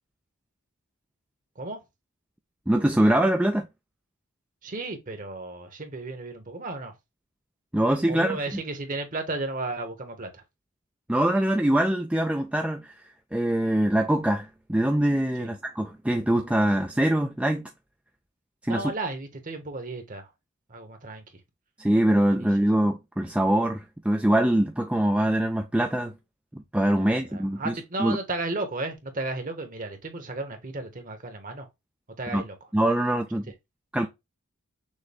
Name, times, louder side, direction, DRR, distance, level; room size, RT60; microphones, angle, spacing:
voice 1, 2.7-3.7 7.7-8.4 11.1-17.7 18.6-18.9 21.8-26.1 26.5-28.2 32.3-32.4 32.7-33.5 33.9-34.1, right 1 dB, 5° right, 0.3 m, -23 dB
voice 2, 4.6-6.9 8.1-10.4 15.4-15.5 18.7-20.3 20.7-21.2 27.0-31.7 32.2-32.5, right 2 dB, 35° right, 1.0 m, -34 dB
6.4 x 2.2 x 3.4 m
head